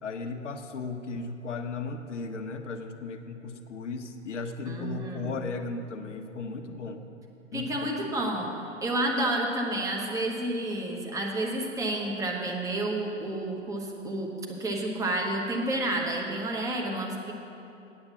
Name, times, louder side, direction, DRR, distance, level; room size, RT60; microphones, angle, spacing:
voice 1, 0.0-7.0 7.5-7.9, left 4 dB, 65° left, 6 dB, 1.0 m, -36 dB
voice 2, 4.6-5.3 7.5-8.5 8.8-14.3 14.6-17.3, right 1 dB, 10° right, 0 dB, 1.1 m, -30 dB
8.8 x 8.8 x 7.2 m, 2.7 s
figure-of-eight pair, 125°, 39 cm